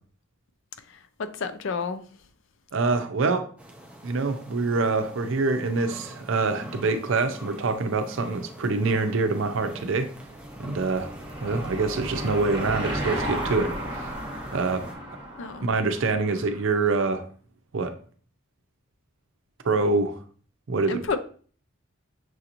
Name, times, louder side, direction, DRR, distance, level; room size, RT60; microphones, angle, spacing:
voice 1, 1.4-2.0 15.4-15.6 20.9-21.2, left 4 dB, 60° left, 0.4 m, -29 dB
voice 2, 2.7-3.5 4.0-10.1 10.6-11.1 11.4-14.1 14.5-14.9 15.6-17.2 17.7-18.0 19.6-20.2 20.7-21.2, right 3 dB, 60° right, 0.5 m, -25 dB
sound 1, 3.6-14.9, equal, 5° right, 0.5 m, -44 dB
Car passing by / Engine, 9.8-16.6, right 1 dB, 20° right, 1.1 m, -34 dB
6.2 x 2.9 x 2.5 m
head